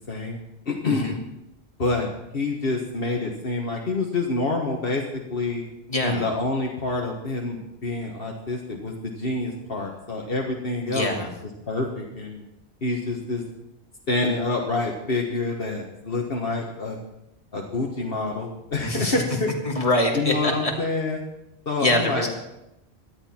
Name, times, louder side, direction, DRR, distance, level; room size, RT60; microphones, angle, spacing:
voice 1, 0.1-0.4 0.6-1.2 1.8-5.6 6.0-11.1 11.7-12.4 12.8-13.4 14.1-17.0 17.5-19.5 20.1-21.2 21.6-22.3, left 3 dB, 60° left, 0 dB, 1.7 m, -27 dB
voice 2, 0.9-1.2 5.9-6.2 10.8-11.3 18.8-19.2 19.6-20.7 21.8-22.3, left 1 dB, 30° left, 0 dB, 2.4 m, -24 dB
18.0 x 12.5 x 4.5 m, 0.86 s
omnidirectional pair, 1.1 m